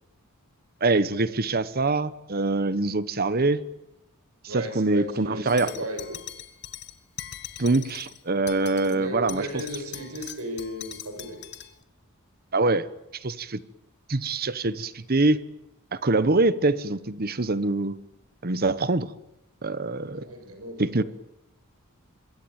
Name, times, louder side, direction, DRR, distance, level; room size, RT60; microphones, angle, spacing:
voice 1, 0.8-3.6 4.4-5.7 7.6-9.4 12.5-12.9 13.2-13.6 14.1-15.4 15.9-18.0 18.4-19.1 19.6-20.3 20.8-21.0, right 2 dB, 45° right, 15 dB, 1.1 m, -24 dB
voice 2, 4.5-6.2 8.5-11.4 20.1-21.0, equal, 85° right, 6 dB, 7.6 m, -35 dB
sound 1, 5.5-8.2 8.5-9.0 9.3-11.7, left 11 dB, 50° left, 1.8 m, -41 dB
26.0 x 22.5 x 8.9 m, 0.90 s
head